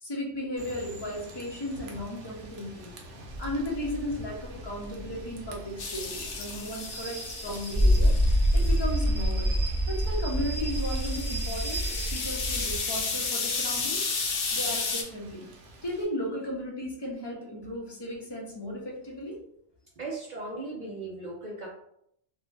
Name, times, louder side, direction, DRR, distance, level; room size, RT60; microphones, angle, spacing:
voice 1, 0.0-2.9 3.4-8.1 8.5-9.5 9.9-14.0 14.5-15.5 15.8-19.4, left 1 dB, 30° left, -2 dB, 0.5 m, -35 dB
Rain / Train, 0.6-16.0, right 2 dB, 80° right, 0.9 m, -43 dB
sound 1, 3.3-6.6 7.4-12.8, equal, 30° right, 0.9 m, -27 dB
sound 2, 5.8-8.8 10.6-15.0, left 4 dB, 80° left, 0.9 m, -33 dB
voice 2, 20.0-21.7, right 2 dB, 55° right, -3 dB, 0.5 m, -37 dB
2.6 x 2.1 x 3.1 m, 0.73 s
omnidirectional pair, 1.2 m